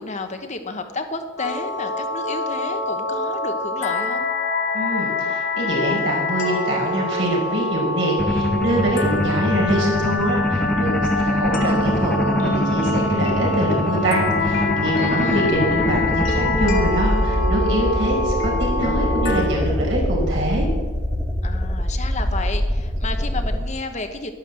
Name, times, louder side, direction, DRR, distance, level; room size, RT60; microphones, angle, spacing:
voice 1, 0.0-4.3 14.9-15.5 21.4-24.3, left 3 dB, 35° left, 6 dB, 1.0 m, -32 dB
sound 1, 1.4-19.4, left 2 dB, 65° left, 2.8 m, -25 dB
voice 2, 4.7-20.7, right 1 dB, 65° right, -2 dB, 5.2 m, -24 dB
sound 2, 8.2-23.6, left 1 dB, 5° left, 1.3 m, -23 dB
11.5 x 11.0 x 7.6 m, 1.4 s
head